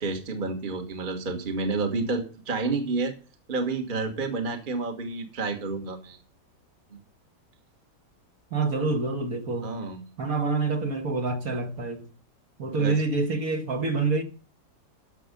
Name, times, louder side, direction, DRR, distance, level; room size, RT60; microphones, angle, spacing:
voice 1, 0.0-3.1 3.5-6.2 6.9-7.0 9.6-10.0 12.7-12.9, right 3 dB, 30° right, 1.4 m, -30 dB
voice 2, 8.5-9.8 10.2-12.1 12.6-14.2, right 3 dB, 50° right, 1.8 m, -27 dB
12.0 x 6.8 x 5.1 m
omnidirectional pair, 2.0 m